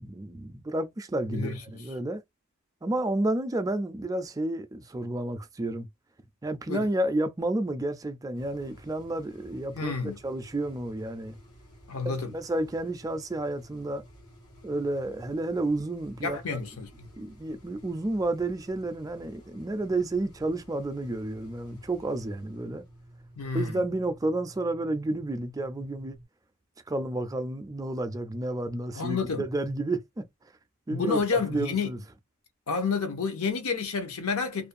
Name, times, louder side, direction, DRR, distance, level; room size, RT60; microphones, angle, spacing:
voice 1, 0.0-2.2 2.8-5.9 6.4-11.4 12.0-14.0 14.6-16.6 17.2-22.8 23.5-26.2 26.9-30.3 30.9-32.0, right 2 dB, 15° right, 0.3 m, -31 dB
voice 2, 1.3-1.8 6.7-6.9 9.7-10.2 11.9-12.3 16.2-17.1 23.4-23.8 28.9-29.5 30.9-31.9 32.7-34.7, left 5 dB, 65° left, 0.8 m, -30 dB
sound 1, 8.3-26.3, equal, 85° left, 1.1 m, -52 dB
2.5 x 2.2 x 2.4 m
head